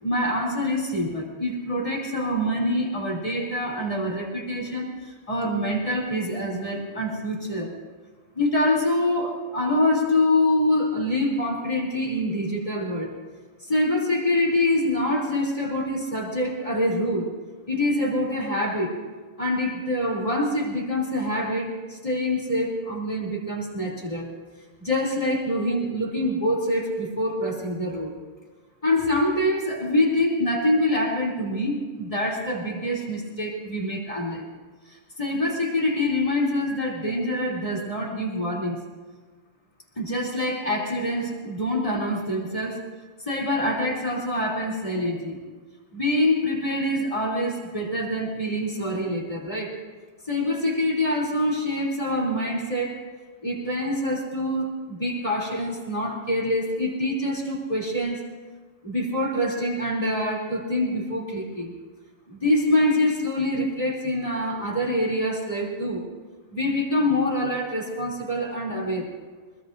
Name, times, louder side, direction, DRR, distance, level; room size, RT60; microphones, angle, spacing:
voice 1, 0.0-7.7 8.3-13.1 13.6-17.3 17.7-18.9 19.4-24.3 24.8-28.1 28.8-34.4 34.9-38.8 40.0-42.9 43.3-45.4 45.9-49.8 50.3-53.0 53.4-58.2 58.8-61.7 62.3-66.1 66.5-69.1, left 1 dB, 20° left, -3 dB, 3.2 m, -25 dB
24.5 x 21.0 x 2.6 m, 1.4 s
omnidirectional pair, 1.6 m